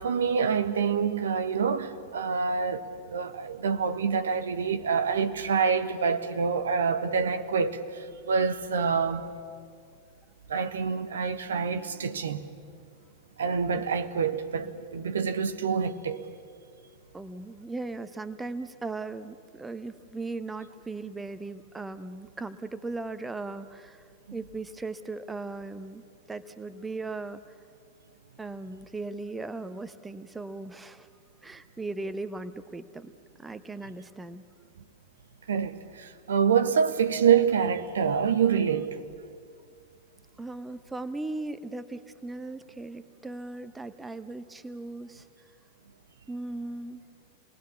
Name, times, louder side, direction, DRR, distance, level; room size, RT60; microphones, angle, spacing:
voice 1, 0.0-9.3 10.5-12.5 13.4-16.3 24.3-24.4 35.5-39.0, right 6 dB, 65° right, 1.2 m, -26 dB
voice 2, 17.1-26.0 26.3-27.5 28.4-31.1 31.4-33.1 33.4-34.4 40.4-45.3 46.3-47.0, right 3 dB, 10° right, 0.9 m, -38 dB
28.0 x 20.0 x 7.0 m
figure-of-eight pair, 90°, 0 cm